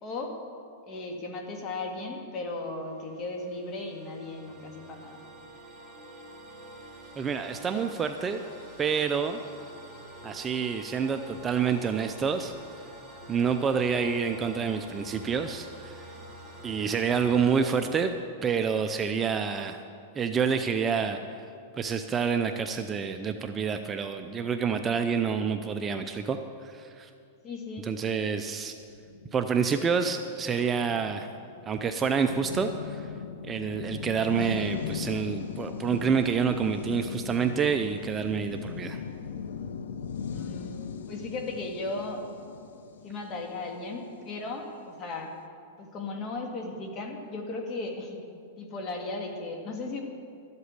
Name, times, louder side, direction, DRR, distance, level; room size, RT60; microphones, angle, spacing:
voice 1, 0.0-0.3 0.8-5.2 27.4-27.9 40.3-42.2 43.0-45.3 45.8-48.2 48.6-50.0, left 2 dB, 30° left, 2 dB, 2.0 m, -36 dB
sound 1, 2.5-17.7, right 1 dB, 5° left, 2.3 m, -47 dB
voice 2, 7.2-8.4 8.8-9.4 10.2-12.5 13.3-16.0 16.6-18.1 18.4-19.8 20.2-21.2 21.8-26.4 26.6-27.1 27.9-28.7 29.3-31.3 31.7-33.0 33.5-39.0, right 6 dB, 20° right, 7 dB, 0.5 m, -28 dB
sound 2, 28.9-44.4, left 6 dB, 85° left, 0.6 m, -39 dB
13.0 x 8.2 x 8.1 m, 2.4 s
supercardioid pair, 145°, 0 cm